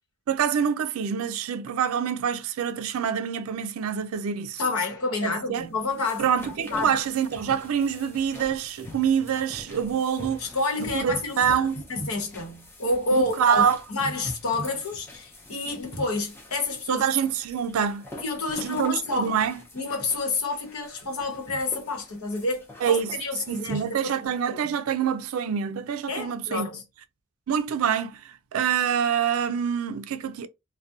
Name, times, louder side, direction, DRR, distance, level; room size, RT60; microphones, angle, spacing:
voice 1, 0.3-4.6 5.2-5.7 6.2-10.5 10.8-11.8 13.1-13.8 16.9-18.0 18.6-19.6 22.8-23.2 23.5-26.7 27.5-30.5, right 7 dB, 75° right, 0.4 m, -26 dB
voice 2, 4.6-6.3 6.6-6.9 10.4-13.6 13.9-17.0 18.1-19.3 19.7-24.1 24.5-24.7 26.1-26.8, left 2 dB, 80° left, 1.0 m, -29 dB
sound 1, 5.6-24.0, left 1 dB, 10° left, 0.5 m, -45 dB
2.4 x 2.1 x 2.6 m
head